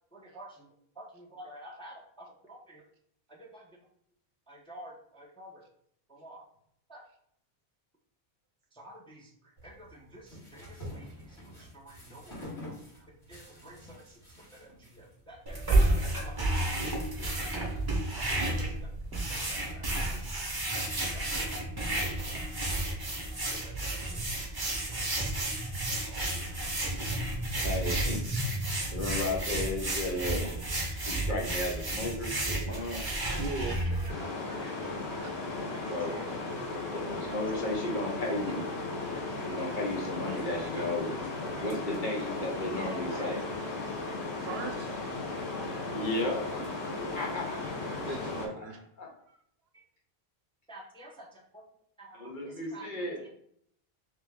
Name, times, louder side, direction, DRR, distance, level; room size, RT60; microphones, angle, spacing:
voice 1, 0.1-0.7 1.0-2.8 3.3-3.7 4.5-5.6 6.1-6.4 6.9-7.0 8.7-9.3 9.6-12.4 12.7-15.6 15.9-16.3 18.2-18.9 19.3-20.3 20.8-21.2 21.5-21.6 21.9-22.8 23.5-24.2 24.9-25.3 26.1-26.5 29.1-29.2 30.7-30.8 32.0-32.1 32.7-33.4 34.0-35.3 35.7-36.3 38.4-38.5 39.0-39.2 40.3-40.9 41.5-41.6 42.9-43.3 47.1-47.2 48.5-48.7 49.7-49.8 50.7-51.6 52.0-53.3, right 1 dB, 5° left, -2 dB, 0.5 m, -51 dB
sound 1, 9.6-16.6, equal, 75° left, 2.0 m, -48 dB
sound 2, 15.5-34.1, right 1 dB, 25° right, 0.7 m, -31 dB
voice 2, 19.1-19.7 21.0-21.3 21.7-21.8 24.0-24.1 33.3-33.8 35.2-35.5 44.3-45.1 47.9-48.8 49.3-49.4, right 4 dB, 70° right, 5 dB, 0.8 m, -40 dB
voice 3, 27.6-28.2 28.9-30.5 31.0-33.2 35.9-36.1 36.9-38.7 39.4-41.1 41.6-43.4 45.9-46.6 47.1-48.1 48.4-48.5 49.0-49.1 52.1-53.2, left 2 dB, 50° left, -1 dB, 0.9 m, -34 dB
sound 3, 34.1-48.5, left 2 dB, 90° left, 1.1 m, -36 dB
3.3 x 3.0 x 3.4 m, 0.68 s
omnidirectional pair, 1.1 m